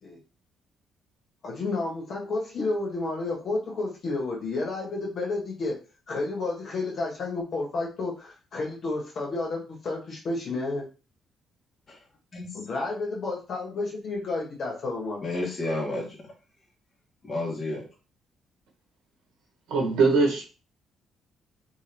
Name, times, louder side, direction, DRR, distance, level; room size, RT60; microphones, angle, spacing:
voice 1, 1.4-5.8 6.1-10.9 12.5-15.3, left 3 dB, 60° left, 1.6 m, -31 dB
voice 2, 15.2-16.3 17.2-17.9, left 2 dB, 35° left, 1.4 m, -31 dB
voice 3, 19.7-20.4, right 4 dB, 90° right, 1.2 m, -21 dB
3.3 x 3.0 x 3.4 m
cardioid pair, 90°, 0 cm